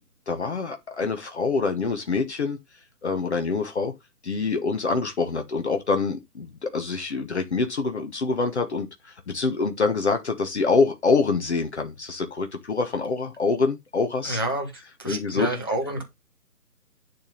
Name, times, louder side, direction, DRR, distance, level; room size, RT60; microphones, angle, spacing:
voice 1, 0.3-2.6 3.0-3.9 4.2-14.4 15.1-15.5, left 4 dB, 45° left, 1.2 m, -25 dB
voice 2, 14.2-14.7 15.0-16.0, right 1 dB, 15° left, 0.7 m, -28 dB
10.5 x 3.6 x 5.5 m
hypercardioid pair, 165°, 47 cm